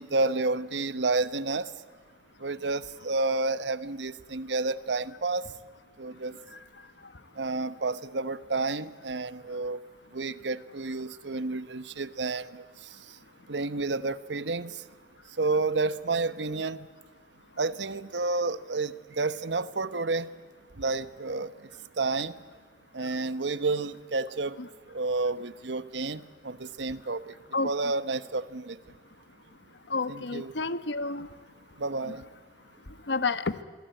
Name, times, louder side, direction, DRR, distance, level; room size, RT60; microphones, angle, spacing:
voice 1, 0.0-1.7 2.4-5.4 6.0-6.3 7.4-9.8 10.1-12.6 13.5-14.8 15.4-16.8 17.6-20.3 20.8-21.5 22.0-22.3 22.9-24.5 24.9-27.2 27.6-28.8 30.1-30.5 31.8-32.2, right 3 dB, 85° right, 14 dB, 1.0 m, -30 dB
voice 2, 29.9-31.3 33.1-33.6, left 3 dB, 85° left, 12 dB, 1.2 m, -29 dB
27.5 x 23.5 x 9.1 m, 1.5 s
head